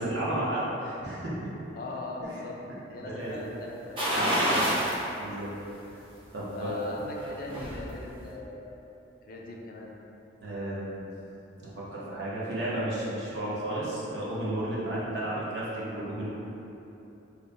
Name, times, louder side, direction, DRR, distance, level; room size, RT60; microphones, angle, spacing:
voice 1, 0.0-1.5 2.2-2.4 3.0-3.3 4.1-4.4 5.2-5.5 6.3-7.0 10.4-11.1 11.6-16.3, right 1 dB, 65° right, -8 dB, 0.8 m, -33 dB
voice 2, 1.7-2.6 2.9-4.5 6.5-8.6 9.2-10.0, left 2 dB, 50° left, -1 dB, 0.3 m, -40 dB
sound 1, 4.0-5.0 5.4-5.5 7.0-7.8 8.2-8.3, equal, 25° right, 0.6 m, -27 dB
3.0 x 2.1 x 3.9 m, 2.9 s
head